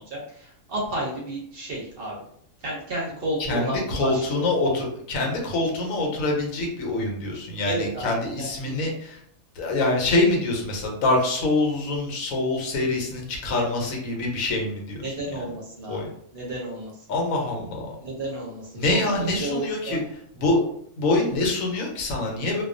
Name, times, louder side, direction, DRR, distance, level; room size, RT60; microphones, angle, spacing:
voice 1, 0.0-2.2 2.6-3.8 4.0-4.2 7.7-8.1 8.4-8.7 15.0-16.9 18.0-19.1 19.4-20.0, right 1 dB, 55° right, -4 dB, 0.7 m, -32 dB
voice 2, 3.4-9.2 9.5-15.2 15.9-16.1 17.1-17.9 18.7-20.0 20.3-20.6 21.0-22.6, left 2 dB, 80° left, 0 dB, 1.1 m, -25 dB
2.3 x 2.3 x 2.5 m, 0.67 s
omnidirectional pair, 1.4 m